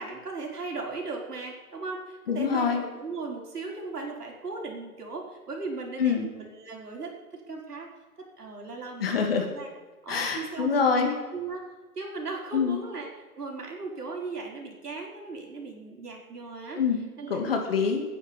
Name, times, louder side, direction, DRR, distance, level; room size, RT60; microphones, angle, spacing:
voice 1, 0.0-7.9 8.2-9.7 10.0-11.6 12.0-16.8 17.2-17.4, right 3 dB, 85° right, 0 dB, 5.2 m, -37 dB
voice 2, 2.3-2.8 6.0-6.3 9.0-9.5 10.1-11.1 12.5-12.8 16.8-18.0, left 6 dB, 40° left, 4 dB, 2.6 m, -25 dB
20.0 x 10.5 x 5.4 m, 1.3 s
hypercardioid pair, 165°, 45 cm